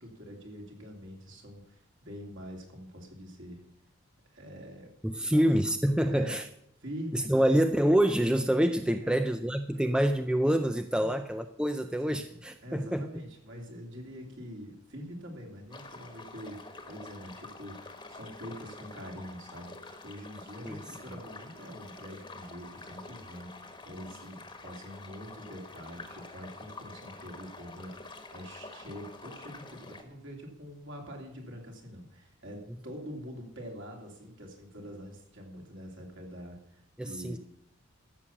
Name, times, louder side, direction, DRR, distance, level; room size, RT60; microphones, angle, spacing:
voice 1, 0.0-3.6 4.3-4.9 5.2-5.5 6.0-6.4 6.8-7.6 8.9-9.3 11.0-11.1 12.1-37.4, equal, 60° right, 1 dB, 2.9 m, -45 dB
voice 2, 5.0-6.5 7.1-13.1 20.6-20.8 37.0-37.4, right 1 dB, 5° right, 8 dB, 0.4 m, -26 dB
sound 1, 15.7-30.0, left 3 dB, 20° left, 1.3 m, -47 dB
13.5 x 7.2 x 7.1 m, 0.74 s
head